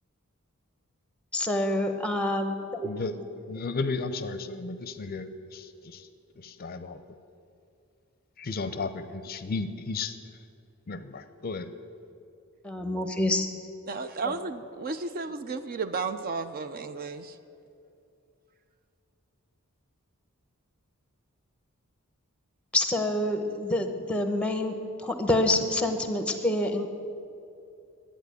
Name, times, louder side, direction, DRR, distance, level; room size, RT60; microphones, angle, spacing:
voice 1, 1.3-2.9 12.6-13.5 14.2-14.3 22.7-24.7 25.0-26.9, left 1 dB, 5° left, 7 dB, 0.8 m, -27 dB
voice 2, 2.8-6.1 6.4-7.0 8.4-10.2 10.9-11.7, left 3 dB, 45° left, 11 dB, 0.5 m, -34 dB
voice 3, 13.9-17.3, right 4 dB, 40° right, 10 dB, 0.4 m, -33 dB
10.5 x 9.0 x 8.2 m, 2.6 s
head